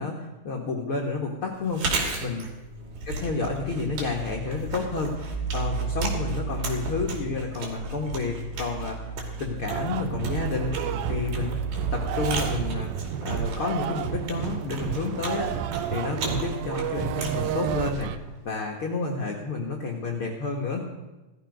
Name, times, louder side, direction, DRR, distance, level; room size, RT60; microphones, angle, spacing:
voice 1, 0.0-1.8 2.2-2.5 3.1-9.0 9.4-11.6 11.9-12.9 13.2-15.5 15.9-18.1 18.4-20.9, left 4 dB, 70° left, 0 dB, 1.3 m, -30 dB
Chewing mastication, 1.6-18.5, right 3 dB, 65° right, 4.1 m, -36 dB
sound 1, 2.8-12.8, right 4 dB, 5° right, 3.0 m, -34 dB
sound 2, 9.7-18.2, right 10 dB, 90° right, 2.0 m, -31 dB
17.0 x 13.0 x 5.4 m, 1.1 s
omnidirectional pair, 4.8 m